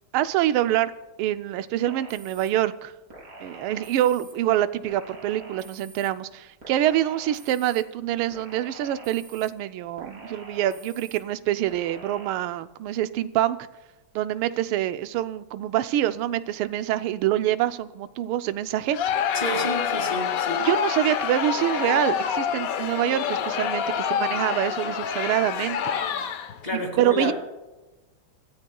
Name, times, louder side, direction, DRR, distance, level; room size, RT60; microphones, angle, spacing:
voice 1, 0.1-0.9 1.2-2.9 3.4-13.6 14.1-19.0 20.6-25.9 27.0-27.3, right 12 dB, 85° right, 12 dB, 1.5 m, -25 dB
sound 1, 1.9-2.5 3.1-4.3 4.9-6.1 6.6-7.8 8.3-9.5 10.0-11.2 11.7-12.3, right 2 dB, 40° right, 3.7 m, -45 dB
Crowd, 18.9-26.6, left 8 dB, 65° left, 0.8 m, -27 dB
voice 2, 19.3-20.6 26.6-27.3, equal, 20° left, 1 dB, 2.3 m, -29 dB
28.5 x 13.5 x 2.3 m, 1.1 s
omnidirectional pair, 2.3 m